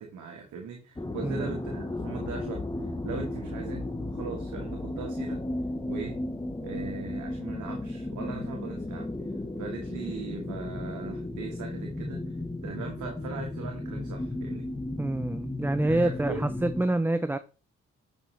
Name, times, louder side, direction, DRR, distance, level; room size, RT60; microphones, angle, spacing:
voice 1, 0.0-5.4 5.9-6.2 6.6-9.1 9.6-12.2 12.6-14.7 15.9-16.5, right 5 dB, 85° right, 1.4 m, -39 dB
sound 1, 1.0-16.8, left 2 dB, 15° left, 1.0 m, -34 dB
voice 2, 15.0-17.4, right 2 dB, 5° right, 0.5 m, -27 dB
9.3 x 5.3 x 3.2 m
supercardioid pair, 55°, 29 cm